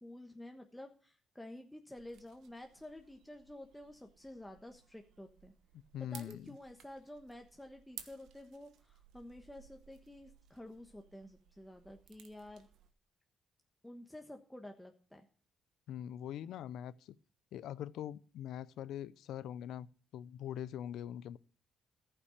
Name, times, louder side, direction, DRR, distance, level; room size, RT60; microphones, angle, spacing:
voice 1, 0.0-5.5 6.0-12.7 13.8-15.3, left 1 dB, 5° left, 1.2 m, -51 dB
sound 1, 1.9-12.9, right 9 dB, 80° right, 1.3 m, -58 dB
voice 2, 5.9-6.6 15.9-17.2 17.5-19.9 20.1-21.4, left 10 dB, 80° left, 0.5 m, -43 dB
14.5 x 5.9 x 6.5 m
cardioid pair, 90°, 0 cm